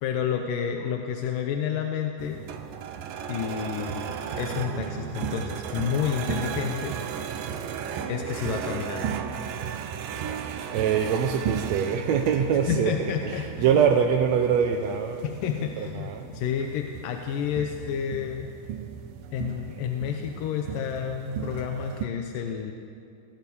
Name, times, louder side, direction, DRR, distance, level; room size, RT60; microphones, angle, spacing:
voice 1, 0.0-2.4 3.3-7.0 8.1-9.2 12.7-14.0 15.2-18.5 19.3-22.7, left 8 dB, 90° left, 4 dB, 2.7 m, -30 dB
sound 1, 2.2-22.1, right 8 dB, 90° right, 2.8 m, -35 dB
voice 2, 10.7-15.2 15.8-16.3, right 7 dB, 70° right, 4 dB, 1.9 m, -24 dB
27.0 x 16.5 x 7.0 m, 2.6 s
omnidirectional pair, 3.8 m